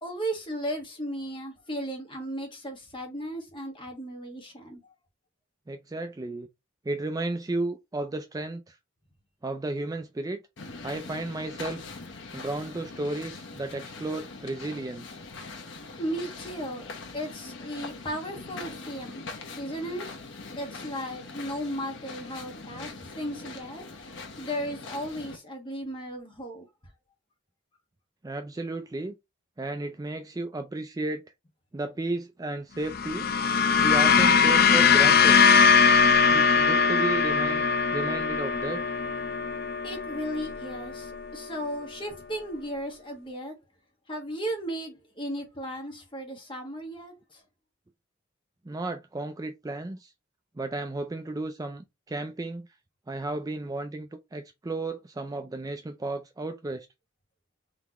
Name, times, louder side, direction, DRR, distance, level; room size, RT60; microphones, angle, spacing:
voice 1, 0.0-4.8 16.0-16.9 17.1-19.2 19.6-20.1 20.6-23.8 24.4-26.7 39.8-43.6 44.1-47.4, equal, 25° left, 1.4 m, -35 dB
voice 2, 5.7-6.5 6.9-8.6 9.4-10.4 10.8-11.8 12.3-15.2 28.2-29.2 29.6-31.2 31.7-33.3 33.8-35.4 36.3-38.8 48.7-50.1 50.6-52.7 53.1-56.9, right 2 dB, 20° right, 0.4 m, -33 dB
sound 1, 10.6-25.4, left 3 dB, 65° left, 1.0 m, -42 dB
sound 2, 32.8-41.3, left 5 dB, 50° left, 0.5 m, -21 dB
3.9 x 3.4 x 2.9 m
head